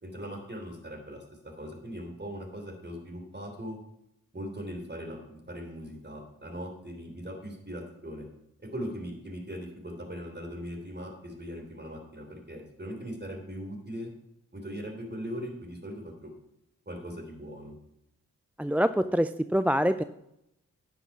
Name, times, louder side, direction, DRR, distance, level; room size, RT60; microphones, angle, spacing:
voice 1, 0.0-3.8 4.3-8.3 8.7-14.1 14.5-16.3 16.8-17.7, equal, 30° right, 3 dB, 3.3 m, -40 dB
voice 2, 18.6-20.0, equal, 5° right, 12 dB, 0.3 m, -25 dB
9.9 x 6.3 x 5.5 m, 0.83 s
supercardioid pair, 45°, 35 cm